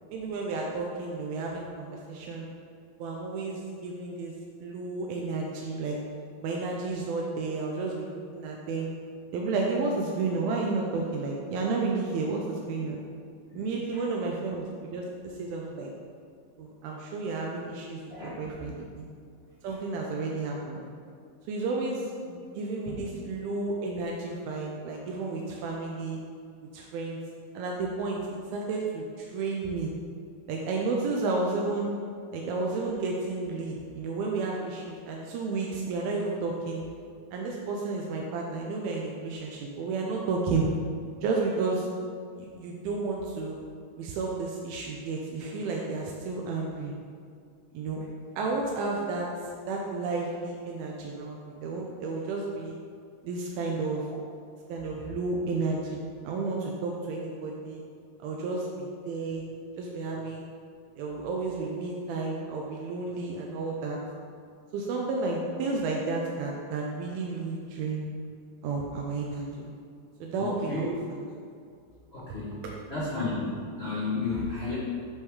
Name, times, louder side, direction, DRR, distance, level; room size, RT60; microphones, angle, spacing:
voice 1, 0.1-2.5 3.0-4.3 4.6-6.0 6.4-8.9 9.3-13.0 13.5-15.9 16.6-19.1 19.6-20.8 21.5-26.2 26.7-27.2 27.5-29.9 30.5-31.9 32.3-36.8 37.3-40.7 41.2-41.9 42.4-43.6 44.0-46.9 47.7-48.0 48.4-52.8 53.2-54.1 54.7-56.0 56.2-57.8 58.2-59.4 59.8-60.5 61.0-64.0 64.7-68.0 68.6-69.7 70.2-70.9 73.8-73.9, right 3 dB, 85° right, -1 dB, 2.5 m, -32 dB
voice 2, 18.1-18.5 22.8-23.1 70.4-70.9 72.1-72.6 72.9-74.7, left 3 dB, 45° left, -12 dB, 0.7 m, -33 dB
8.3 x 3.6 x 4.7 m, 2.3 s
omnidirectional pair, 4.2 m